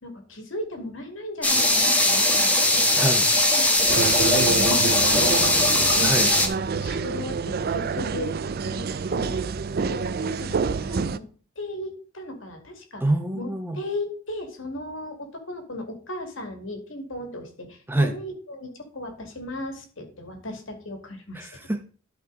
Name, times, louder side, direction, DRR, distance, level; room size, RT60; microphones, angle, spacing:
voice 1, 0.0-3.2 3.6-6.0 6.7-8.3 8.7-9.4 9.8-11.2 11.6-13.0 13.4-21.7, left 1 dB, 70° left, 4 dB, 2.3 m, -36 dB
sound 1, 1.4-6.5, left 1 dB, 5° left, 1.2 m, -20 dB
voice 2, 3.0-3.3 6.0-6.3 13.0-13.8 17.9-18.1 21.3-21.8, right 1 dB, 10° right, 8 dB, 0.7 m, -25 dB
sound 2, 3.9-11.2, right 5 dB, 50° right, 0.4 m, -27 dB
12.0 x 5.0 x 3.9 m, 0.40 s
head